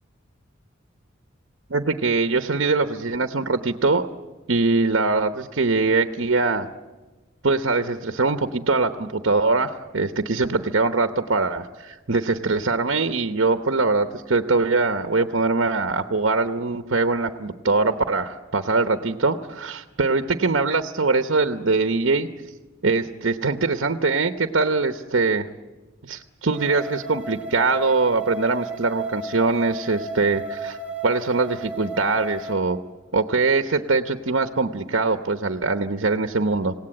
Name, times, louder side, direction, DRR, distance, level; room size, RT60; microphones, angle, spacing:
voice 1, 1.7-4.1 4.5-6.7 7.4-22.3 22.8-25.5 26.0-30.8 31.0-32.8 33.1-36.7, right 3 dB, 70° right, 8 dB, 1.0 m, -22 dB
sound 1, 26.5-32.5, right 2 dB, 10° right, 7.8 m, -34 dB
27.0 x 18.0 x 8.7 m, 1.2 s
head